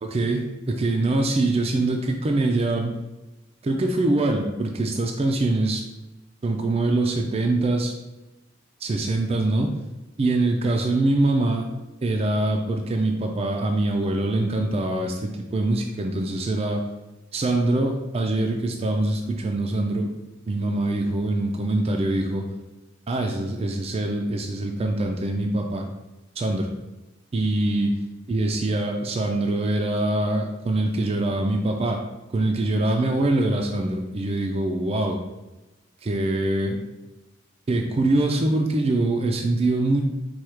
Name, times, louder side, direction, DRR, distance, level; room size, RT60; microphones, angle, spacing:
voice 1, 0.0-2.9 3.6-5.8 6.4-7.9 8.8-9.7 10.2-11.7 12.0-16.8 17.3-20.1 20.5-22.5 23.1-25.9 26.4-26.7 27.3-27.9 28.3-32.0 32.3-35.2 36.0-36.8 37.7-40.0, right 2 dB, 30° right, 2 dB, 0.4 m, -24 dB
4.4 x 2.3 x 4.8 m, 1.0 s
head